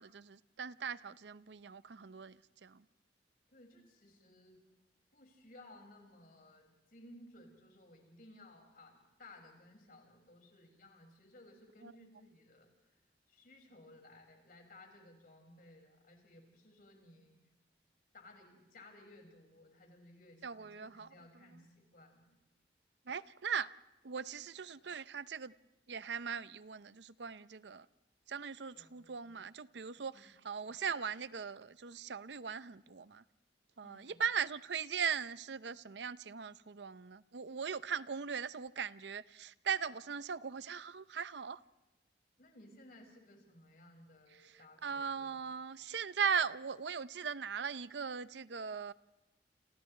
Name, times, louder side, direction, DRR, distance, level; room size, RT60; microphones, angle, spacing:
voice 1, 0.0-2.8 11.8-11.9 20.4-21.1 23.1-23.7 24.0-25.5 25.9-27.9 28.3-33.2 33.8-41.6 44.8-48.9, right 6 dB, 80° right, 0.6 m, -39 dB
voice 2, 3.5-4.6 5.1-12.9 13.3-17.4 18.1-22.3 28.7-29.3 30.1-30.3 33.8-34.2 42.4-45.5, left 1 dB, 55° left, 5.8 m, -59 dB
29.5 x 27.0 x 3.3 m
head